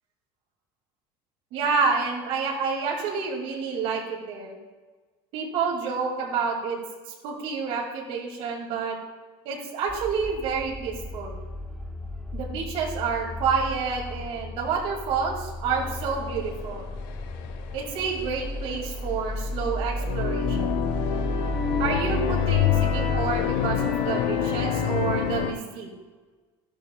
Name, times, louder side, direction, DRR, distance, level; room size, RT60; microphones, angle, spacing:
voice 1, 1.5-4.6 5.3-6.8 7.2-9.0 9.4-11.4 12.3-16.8 17.7-20.7 21.8-25.9, right 5 dB, 65° right, -2 dB, 2.4 m, -29 dB
sound 1, 9.9-24.1, equal, 5° left, 0.4 m, -34 dB
sound 2, 15.7-25.5, left 9 dB, 75° left, 1.1 m, -27 dB
14.0 x 12.0 x 2.3 m, 1.4 s
cardioid pair, 150°, 11 cm